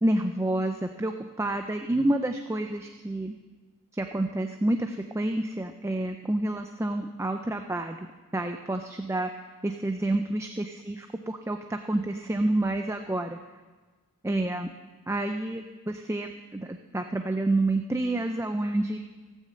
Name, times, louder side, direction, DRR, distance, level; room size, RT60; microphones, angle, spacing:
voice 1, 0.0-1.1 1.4-3.3 3.9-8.0 8.3-13.4 14.2-14.7 15.1-19.0, right 1 dB, 10° right, 5 dB, 0.4 m, -29 dB
16.5 x 6.4 x 7.7 m, 1.3 s
head